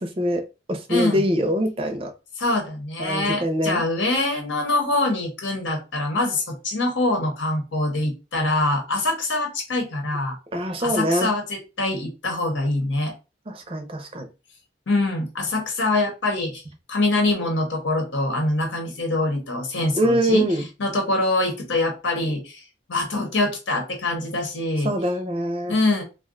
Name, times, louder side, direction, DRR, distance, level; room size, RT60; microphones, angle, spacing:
voice 1, 0.0-0.4 0.7-2.1 3.0-3.8 10.5-11.3 13.5-14.3 19.9-20.7 24.8-25.7, equal, 30° right, 6 dB, 0.5 m, -23 dB
voice 2, 0.9-1.2 2.4-10.4 10.8-13.1 14.9-16.6 16.9-20.4 20.8-22.6 22.9-24.9 25.7-26.0, left 2 dB, 90° left, 2 dB, 1.0 m, -24 dB
2.4 x 2.2 x 3.6 m, 0.29 s
head